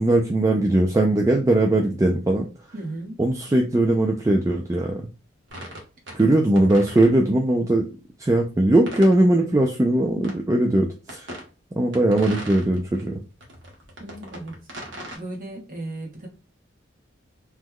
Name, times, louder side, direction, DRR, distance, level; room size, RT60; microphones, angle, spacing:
voice 1, 0.0-2.5 3.2-5.1 6.1-7.9 8.2-11.3 11.8-13.2, right 1 dB, 15° right, 1 dB, 0.3 m, -20 dB
voice 2, 2.7-3.2 6.2-6.4 14.0-14.6 15.1-16.3, right 2 dB, 45° right, 1 dB, 0.9 m, -35 dB
sound 1, 5.5-6.3 6.6-7.1 8.9-9.2 10.2-10.3 11.1-11.5 11.9-13.0 13.4-15.2, right 1 dB, 75° right, 1.0 m, -38 dB
3.0 x 2.2 x 3.5 m, 0.31 s
head